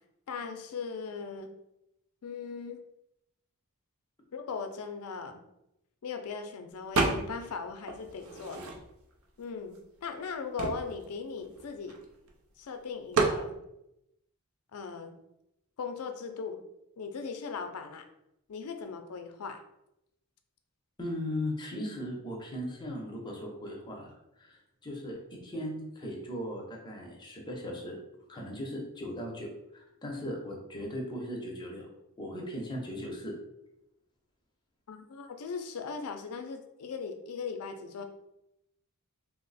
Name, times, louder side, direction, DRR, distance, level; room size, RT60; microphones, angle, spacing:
voice 1, 0.3-1.5 2.2-2.8 4.3-5.4 6.0-8.6 9.4-12.0 12.6-13.6 14.7-15.2 15.8-16.6 17.0-18.1 18.5-19.6 34.9-38.0, left 5 dB, 80° left, 6 dB, 0.4 m, -39 dB
sound 1, 6.9-7.5 7.9-9.1 9.7-9.8 10.1-12.3 13.1-13.4, right 3 dB, 65° right, 0.5 m, -30 dB
voice 2, 21.0-28.0 28.3-31.9 32.2-33.3, left 1 dB, 20° left, -1 dB, 0.6 m, -38 dB
2.9 x 2.0 x 4.0 m, 0.85 s
head